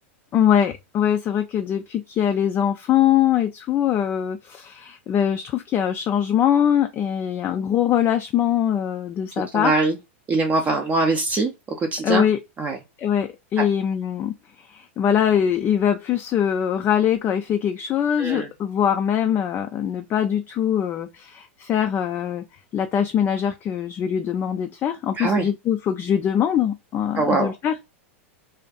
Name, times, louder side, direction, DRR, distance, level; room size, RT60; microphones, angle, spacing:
voice 1, 0.3-9.7 12.0-12.4 13.0-22.4 22.7-27.8, left 9 dB, 30° left, 0.3 m, -22 dB
voice 2, 9.5-10.0 10.3-12.2 12.6-12.8 13.6-13.7 18.2-18.5 25.1-25.5 27.1-27.5, right 3 dB, 20° right, 0.5 m, -22 dB
2.5 x 2.4 x 2.2 m
hypercardioid pair, 115°, 7 cm